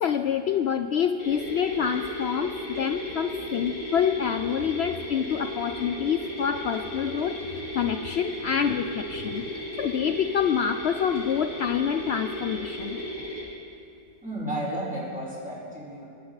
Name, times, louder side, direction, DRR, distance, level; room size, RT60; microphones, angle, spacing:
voice 1, 0.0-13.0, left 8 dB, 90° left, 9 dB, 0.5 m, -27 dB
sound 1, 1.2-13.4, equal, 60° left, 5.5 m, -35 dB
voice 2, 14.2-16.1, right 1 dB, 5° right, -6 dB, 4.8 m, -32 dB
24.0 x 15.0 x 4.0 m, 2.5 s
omnidirectional pair, 1.7 m